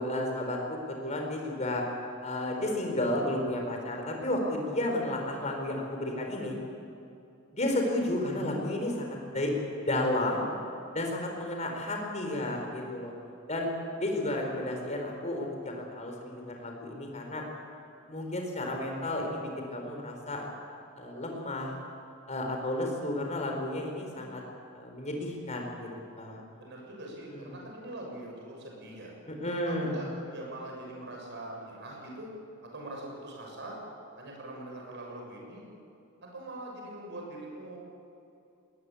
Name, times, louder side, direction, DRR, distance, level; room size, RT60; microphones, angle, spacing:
voice 1, 0.0-1.8 2.2-6.6 7.5-10.4 10.9-13.1 13.5-17.4 18.1-20.5 20.9-21.7 22.3-24.4 24.7-25.9 26.2-26.4 27.3-27.5 29.3-30.0, left 1 dB, 35° left, 2 dB, 4.6 m, -32 dB
voice 2, 26.6-29.1 29.6-32.3 32.6-33.8 34.2-35.7 36.2-37.8, right 1 dB, 55° right, -1 dB, 6.9 m, -42 dB
21.0 x 19.5 x 8.6 m, 2.7 s
head